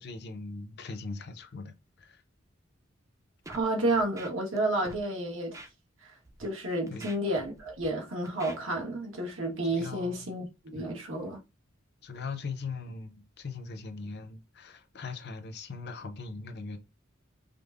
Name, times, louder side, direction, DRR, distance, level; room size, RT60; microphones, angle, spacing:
voice 1, 0.0-2.2 6.9-7.1 9.7-10.2 10.7-10.9 11.2-11.3 12.0-16.8, left 4 dB, 55° left, 0.6 m, -40 dB
Scratching (performance technique), 3.4-3.7 4.0-4.6 4.8-5.0 5.5-5.7 6.2-6.5 6.9-7.9 8.3-8.6, right 2 dB, 15° right, 0.5 m, -46 dB
voice 2, 3.5-5.6 6.4-11.4, right 1 dB, 75° right, 1.2 m, -31 dB
5.1 x 2.1 x 2.4 m
head